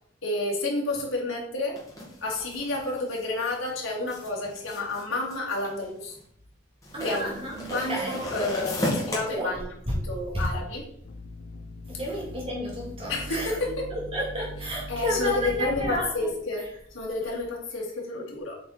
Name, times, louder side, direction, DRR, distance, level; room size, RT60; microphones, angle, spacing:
voice 1, 0.2-1.8 2.2-6.2 7.0-10.8 13.1-13.9 14.9-18.6, left 2 dB, 85° left, -2 dB, 2.4 m, -30 dB
sound 1, 1.8-6.2 6.8-9.2, left 1 dB, 15° left, 2.0 m, -34 dB
voice 2, 6.9-8.2 9.2-9.5 9.9-10.1 10.3-10.5 11.9-13.6 13.9-16.3, equal, 30° right, -3 dB, 2.4 m, -31 dB
sound 2, 11.0-16.1, equal, 55° left, 0.6 m, -40 dB
8.1 x 4.4 x 4.2 m, 0.67 s
head